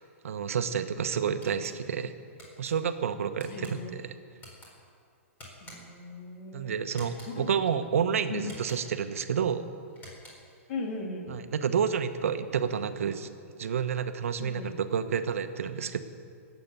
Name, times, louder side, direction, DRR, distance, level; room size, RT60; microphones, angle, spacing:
voice 1, 0.2-2.1 2.6-4.1 6.5-9.6 11.3-13.3 13.6-16.0, right 7 dB, 75° right, 9 dB, 0.9 m, -29 dB
sound 1, 1.4-1.8 2.4-2.7 3.4-3.7 4.4-4.7 5.4-6.0 6.9-7.3 8.4-9.0 9.9-10.5, left 1 dB, 25° left, 4.2 m, -49 dB
voice 2, 3.5-3.9 5.6-6.8 7.3-7.5 8.3-8.5 10.7-11.4 14.4-14.8, left 3 dB, 55° left, 2 dB, 2.6 m, -38 dB
20.5 x 8.3 x 6.9 m, 2.3 s
hypercardioid pair, 135°, 8 cm